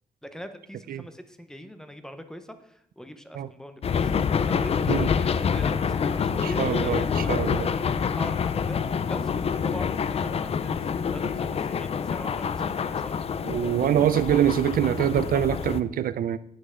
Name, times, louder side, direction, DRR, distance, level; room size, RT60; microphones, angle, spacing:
voice 1, 0.2-8.8 9.1-13.3, equal, 5° left, 8 dB, 0.6 m, -43 dB
sound 1, 3.8-15.8, left 6 dB, 45° left, 0.4 m, -27 dB
voice 2, 6.4-7.7 13.4-16.4, right 10 dB, 80° right, 14 dB, 0.4 m, -24 dB
9.6 x 7.9 x 3.7 m, 0.72 s
wide cardioid pair, 165°, 15 cm